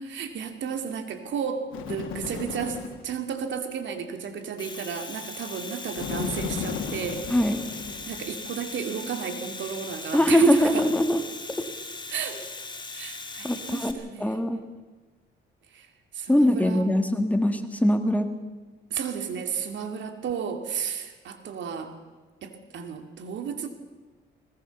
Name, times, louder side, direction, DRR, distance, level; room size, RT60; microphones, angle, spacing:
voice 1, 0.0-7.2 8.1-10.9 12.1-12.5 12.9-14.4 15.7-15.9 16.1-16.9 18.9-21.9 22.4-23.7, right 6 dB, 70° right, 6 dB, 2.5 m, -32 dB
Bird, 1.7-3.1 5.9-8.5, left 6 dB, 90° left, 2.4 m, -35 dB
Domestic sounds home sounds, 4.4-13.9, left 3 dB, 25° left, 2.2 m, -39 dB
voice 2, 7.3-7.6 10.1-11.2 13.4-14.6 16.3-18.3, left 1 dB, 5° left, 7 dB, 1.7 m, -22 dB
20.0 x 18.5 x 7.1 m, 1.3 s
cardioid pair, 90°, 20 cm